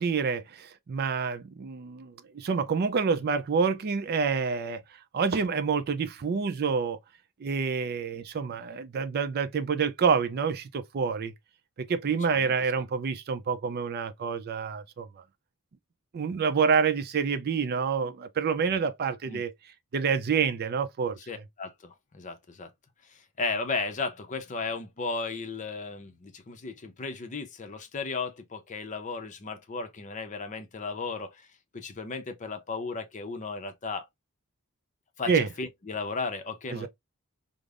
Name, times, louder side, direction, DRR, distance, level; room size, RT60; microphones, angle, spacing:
voice 1, 0.0-4.8 5.1-7.0 7.4-11.3 11.8-15.1 16.1-19.5 19.9-21.2 35.3-35.5 36.7-36.9, right 5 dB, 45° right, 0.4 m, -27 dB
voice 2, 21.3-22.7 23.0-31.5 31.7-34.1 35.2-36.9, left 4 dB, 35° left, 0.6 m, -35 dB
5.0 x 2.0 x 2.4 m
head